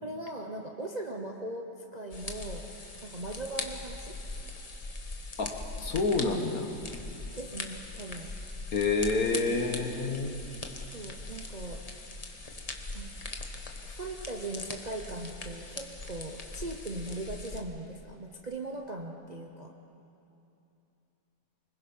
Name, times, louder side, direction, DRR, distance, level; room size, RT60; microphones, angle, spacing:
voice 1, 0.0-4.2 7.4-8.3 10.9-12.3 12.9-13.1 13.8-19.7, right 2 dB, 30° right, 2 dB, 0.8 m, -39 dB
sound 1, 2.1-17.6, left 2 dB, 25° left, 1.1 m, -41 dB
voice 2, 5.4-6.7 8.7-10.5, left 3 dB, 55° left, 4 dB, 1.8 m, -28 dB
24.5 x 21.0 x 5.5 m, 2.8 s
omnidirectional pair, 1.9 m